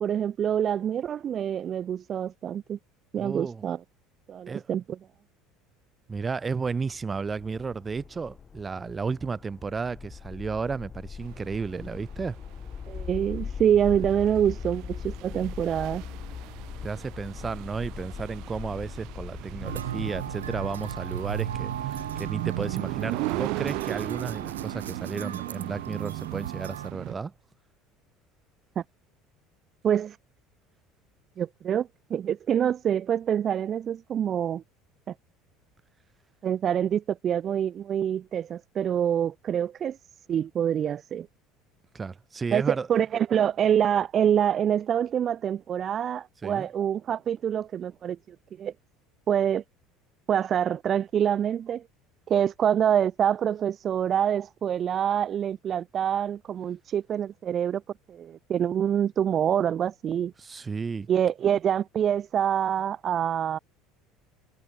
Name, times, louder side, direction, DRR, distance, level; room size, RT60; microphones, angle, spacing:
voice 1, 0.0-2.8 3.1-3.8 4.3-5.0 12.9-16.0 28.8-28.9 29.8-30.2 31.4-34.6 36.4-40.0 40.3-41.3 42.5-48.7 49.3-49.6 50.3-51.8 52.3-57.8 58.1-60.3 61.1-63.6, right 9 dB, 40° right, 0.4 m, -26 dB
voice 2, 3.1-3.7 4.5-4.7 6.1-12.4 16.8-27.3 41.9-42.9 46.4-46.7 60.4-61.1, right 5 dB, 25° right, 1.3 m, -33 dB
sound 1, 6.1-24.9, left 6 dB, 30° left, 6.1 m, -41 dB
sound 2, 11.3-27.1, right 22 dB, 60° right, 1.6 m, -37 dB
sound 3, 19.6-26.9, right 9 dB, 80° right, 0.9 m, -37 dB
figure-of-eight pair, 65°, 0 cm